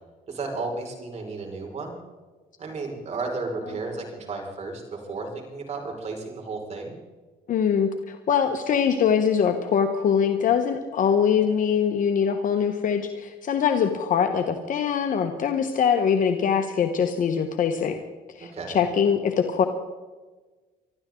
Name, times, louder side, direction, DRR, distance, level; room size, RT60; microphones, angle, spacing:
voice 1, 0.3-1.9 2.6-7.0 18.4-18.8, right 3 dB, 40° right, 1 dB, 5.4 m, -33 dB
voice 2, 7.5-18.0 18.3-19.6, left 7 dB, 50° left, 6 dB, 1.3 m, -23 dB
24.5 x 13.0 x 3.9 m, 1.3 s
cardioid pair, 110°, 17 cm